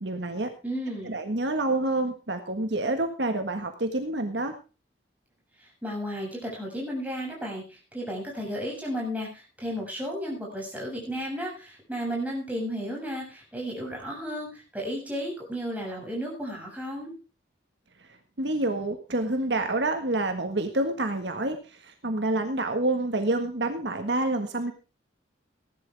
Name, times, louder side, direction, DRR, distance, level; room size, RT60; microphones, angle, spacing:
voice 1, 0.0-0.5 1.0-4.5 18.4-24.7, right 2 dB, 65° right, 6 dB, 1.6 m, -28 dB
voice 2, 0.6-1.2 5.6-17.1, equal, 10° right, -2 dB, 7.1 m, -33 dB
18.0 x 11.5 x 3.5 m, 0.33 s
head